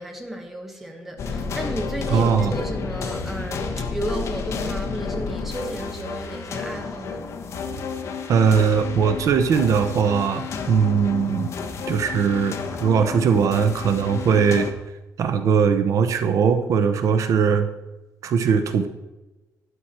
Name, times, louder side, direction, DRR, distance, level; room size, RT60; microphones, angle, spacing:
voice 1, 0.0-7.3, right 1 dB, 5° right, 1.3 m, -33 dB
sound 1, 1.2-14.7, left 5 dB, 50° left, 1.2 m, -31 dB
voice 2, 2.1-2.5 8.3-11.5 11.9-14.7 15.2-17.7 18.2-18.9, right 6 dB, 60° right, 0.8 m, -20 dB
12.5 x 9.9 x 4.4 m
cardioid pair, 175°, 6 cm